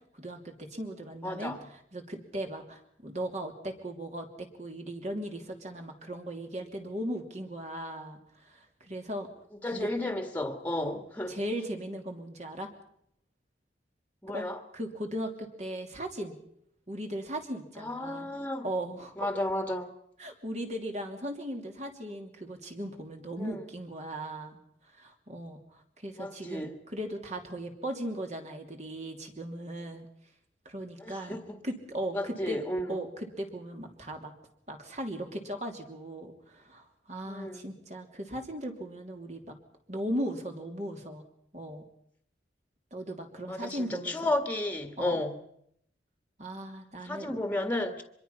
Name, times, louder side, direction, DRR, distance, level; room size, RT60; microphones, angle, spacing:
voice 1, 0.1-9.3 9.7-9.9 10.8-10.9 11.3-12.7 14.3-14.5 14.7-16.4 16.9-18.3 18.6-19.1 20.2-24.6 24.9-30.1 30.6-32.6 32.9-34.3 34.7-39.5 39.9-41.2 41.5-41.8 42.9-44.2 45.0-45.2 46.4-47.4, right 1 dB, 40° right, 4 dB, 2.8 m, -38 dB
voice 2, 1.2-1.6 9.6-11.4 14.2-14.6 17.8-18.7 19.2-19.9 23.4-23.6 26.2-26.7 31.0-31.6 32.1-32.9 37.3-37.6 43.5-45.4 47.1-48.0, left 1 dB, 10° left, 7 dB, 1.8 m, -33 dB
25.0 x 22.0 x 5.7 m, 0.71 s
head